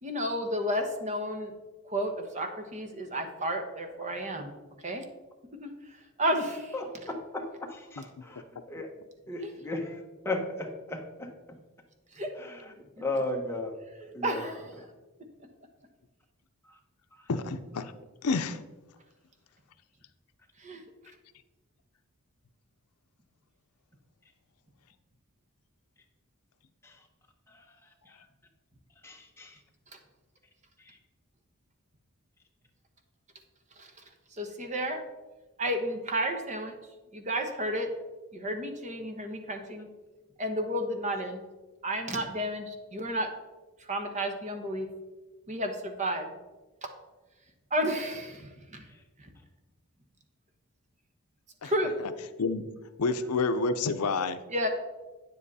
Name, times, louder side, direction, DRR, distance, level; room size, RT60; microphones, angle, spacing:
voice 1, 0.0-1.5 1.8-4.5 4.8-5.0 5.6-6.7 9.4-9.5 12.1-12.3 14.2-14.8 20.6-20.8 33.8-34.0 34.3-35.0 35.6-36.7 37.1-37.9 38.3-39.9 40.4-41.4 41.8-43.3 43.8-44.9 45.5-46.3 47.7-48.9 49.2-49.3 51.6-51.9 54.5-54.7, equal, 35° right, 5 dB, 1.1 m, -32 dB
voice 2, 6.7-8.9 9.3-11.6 12.4-14.4 16.7-16.8 26.8-27.0 27.5-27.6 28.1-28.2 29.0-29.6 30.8-31.0 48.9-49.0, left 2 dB, 10° left, 1 dB, 1.1 m, -36 dB
voice 3, 17.3-17.9 18.2-18.6 51.6-51.7 52.4-52.7 53.0-54.4, left 4 dB, 80° left, 10 dB, 0.6 m, -28 dB
9.1 x 7.6 x 4.1 m, 1.2 s
head